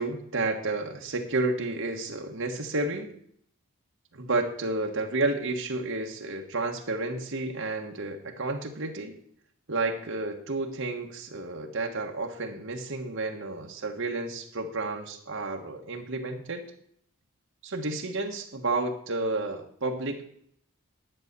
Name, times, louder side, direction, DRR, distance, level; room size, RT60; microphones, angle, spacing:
voice 1, 0.0-3.1 4.1-9.2 9.7-16.6 17.6-20.2, right 2 dB, 60° right, 2 dB, 1.4 m, -31 dB
11.0 x 8.8 x 6.8 m, 0.66 s
head